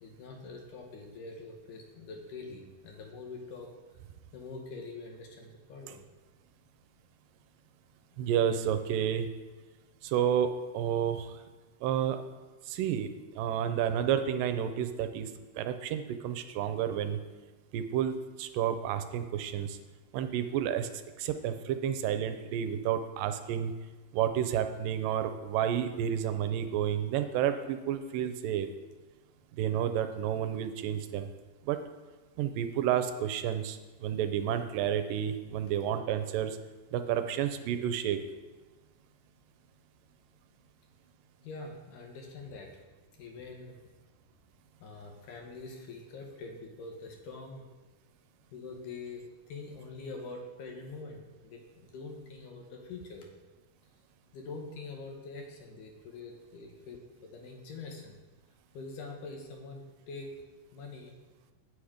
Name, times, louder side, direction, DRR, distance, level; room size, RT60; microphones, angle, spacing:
voice 1, 0.0-3.7 4.3-6.1 41.4-42.8 43.2-43.8 44.8-47.7 48.5-53.3 54.3-58.2 58.7-60.3 60.7-61.2, left 3 dB, 75° left, 1 dB, 2.4 m, -44 dB
voice 2, 8.2-9.3 10.0-11.3 11.8-12.2 12.7-13.1 13.4-15.3 15.6-17.2 17.7-19.8 20.1-20.9 21.2-23.7 24.1-28.7 29.6-31.3 31.7-31.8 32.4-36.6 36.9-38.2, right 9 dB, 80° right, 9 dB, 2.2 m, -30 dB
8.5 x 6.0 x 4.9 m, 1.2 s
omnidirectional pair, 4.0 m